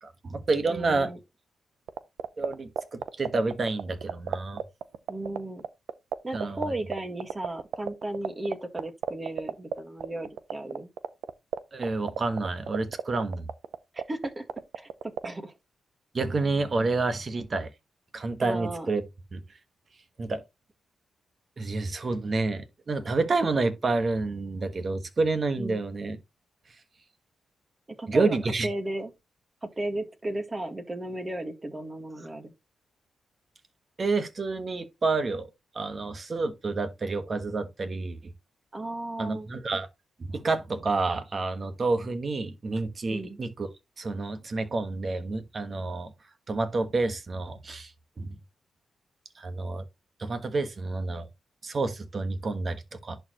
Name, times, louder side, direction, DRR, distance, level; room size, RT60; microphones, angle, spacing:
voice 1, 0.0-1.1 2.4-4.6 6.3-6.7 11.7-13.5 16.1-17.7 18.1-19.0 19.3-19.4 20.2-20.4 21.6-26.2 28.1-28.7 34.0-35.5 35.7-38.2 39.2-39.9 40.2-43.7 44.0-46.1 46.5-47.9 48.2-48.4 49.4-49.8 50.2-51.3 51.6-53.2, right 3 dB, 40° right, 1.4 m, -29 dB
voice 2, 0.7-1.2 5.1-5.6 6.2-10.9 13.9-14.4 14.7-15.5 18.4-18.9 25.6-25.8 28.0-29.1 29.6-32.5 38.7-39.5 43.1-43.4, right 1 dB, 25° right, 1.7 m, -35 dB
sound 1, 1.9-15.3, right 9 dB, 80° right, 0.7 m, -30 dB
11.0 x 4.7 x 3.0 m
cardioid pair, 85°, 0 cm